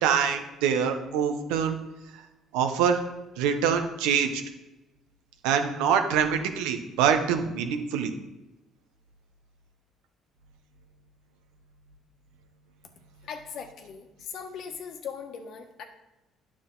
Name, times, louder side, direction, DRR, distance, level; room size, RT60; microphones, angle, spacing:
voice 1, 0.0-1.7 2.5-3.0 3.4-4.4 5.4-8.1, right 7 dB, 90° right, 6 dB, 0.9 m, -25 dB
voice 2, 13.2-15.8, left 6 dB, 65° left, 5 dB, 1.2 m, -39 dB
9.7 x 6.3 x 3.9 m, 1.0 s
supercardioid pair, 85°, 0 cm